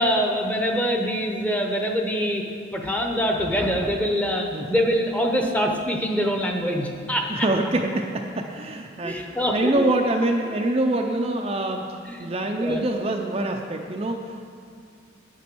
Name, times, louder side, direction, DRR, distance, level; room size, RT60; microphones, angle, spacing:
voice 1, 0.0-2.4 2.7-7.5 9.0-9.8 12.1-12.3 12.6-12.9, equal, 5° left, 2 dB, 0.8 m, -24 dB
voice 2, 7.3-11.8 12.2-14.5, right 1 dB, 30° right, 2 dB, 0.5 m, -25 dB
9.2 x 8.4 x 6.1 m, 2.4 s
head